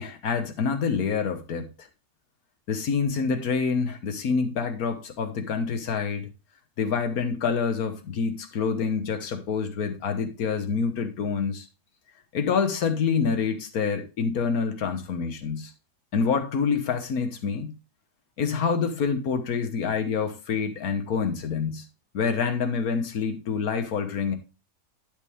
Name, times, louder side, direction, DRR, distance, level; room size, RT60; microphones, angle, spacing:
voice 1, 0.0-1.9 2.7-6.3 6.8-11.7 12.3-15.7 16.1-17.7 18.4-21.8 22.1-24.4, left 5 dB, 90° left, 1.7 m, -27 dB
12.0 x 5.2 x 3.5 m
omnidirectional pair, 1.5 m